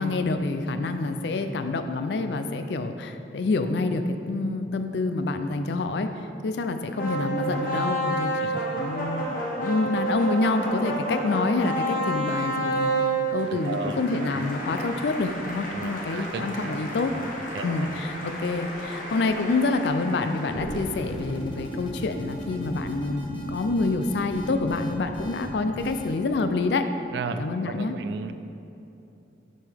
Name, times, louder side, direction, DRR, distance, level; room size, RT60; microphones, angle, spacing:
voice 1, 0.0-12.9 13.3-17.1 17.6-26.9 27.4-27.9, left 3 dB, 65° left, 8 dB, 0.4 m, -27 dB
sound 1, 6.9-21.1, right 1 dB, 45° left, 1.1 m, -30 dB
voice 2, 13.5-14.5 15.7-16.8 17.1-17.3 17.5-18.0 27.1-28.3, right 4 dB, 65° right, 10 dB, 0.3 m, -35 dB
sound 2, 20.4-26.2, equal, 25° left, 1.0 m, -36 dB
7.6 x 5.5 x 3.4 m, 2.8 s
head